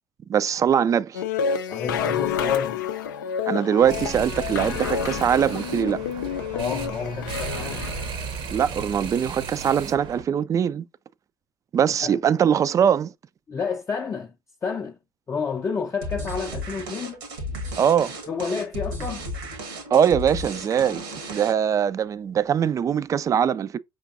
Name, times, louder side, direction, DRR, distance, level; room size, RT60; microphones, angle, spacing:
voice 1, 0.3-1.2 3.5-6.0 8.5-10.9 11.7-13.1 17.8-18.1 19.9-23.8, right 8 dB, 30° right, 0.3 m, -22 dB
sound 1, 1.1-8.2, left 8 dB, 80° left, 0.4 m, -29 dB
voice 2, 1.7-2.8 6.5-7.9 12.0-12.2 13.5-14.3 14.6-15.0 15.3-17.2 18.3-19.3, left 5 dB, 25° left, 0.5 m, -29 dB
sound 2, 3.8-10.2, right 5 dB, 55° right, 0.8 m, -35 dB
sound 3, 16.0-21.8, equal, 80° right, 1.5 m, -34 dB
5.1 x 3.5 x 2.5 m
hypercardioid pair, 65°, 11 cm